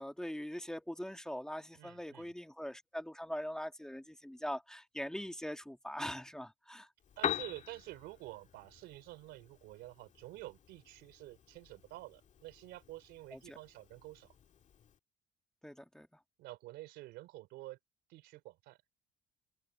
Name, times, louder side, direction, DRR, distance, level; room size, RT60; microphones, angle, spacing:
voice 1, 0.0-6.9 13.3-13.6 15.6-16.1, equal, 5° left, 1.7 m, -42 dB
voice 2, 1.7-2.3 7.2-14.3 16.4-17.8 18.1-18.8, right 18 dB, 90° right, 3.7 m, -49 dB
Piano, 7.0-15.0, left 9 dB, 45° left, 1.9 m, -45 dB
open air
cardioid pair, 110°, 17 cm